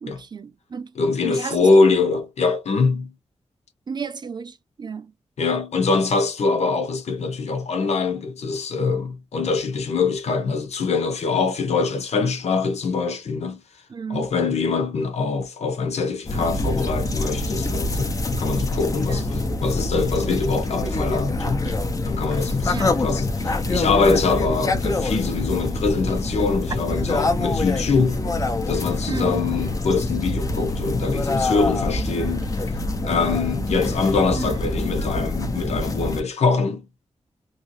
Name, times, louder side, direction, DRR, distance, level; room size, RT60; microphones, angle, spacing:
voice 1, 0.0-0.9 1.2-1.7 3.9-5.1 13.9-14.3 19.0-19.3 22.7-22.9 29.1-29.4 34.3-34.6, right 5 dB, 40° right, 0.5 m, -33 dB
voice 2, 1.0-3.1 5.4-13.6 14.1-21.7 22.0-28.3 28.7-32.5 33.0-36.9, left 4 dB, 80° left, 1.0 m, -23 dB
sound 1, 16.2-36.2, left 2 dB, 30° left, 0.7 m, -25 dB
3.1 x 2.8 x 3.1 m
wide cardioid pair, 170°, 11 cm